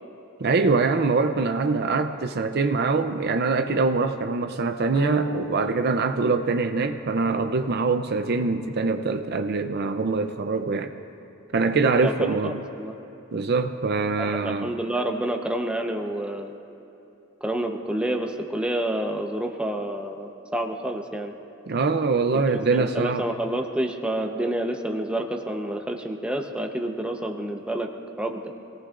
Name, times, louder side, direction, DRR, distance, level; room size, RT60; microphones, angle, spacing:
voice 1, 0.4-10.9 11.5-12.6 13.3-14.7 21.7-23.3, right 4 dB, 55° right, 7 dB, 0.6 m, -24 dB
sound 1, 5.0-7.3, right 2 dB, 60° left, 1.6 m, -36 dB
voice 2, 12.0-12.9 14.2-16.5 17.4-21.3 22.5-27.9 28.2-28.4, right 1 dB, 5° right, 2 dB, 0.9 m, -29 dB
27.5 x 18.0 x 2.5 m, 2.9 s
head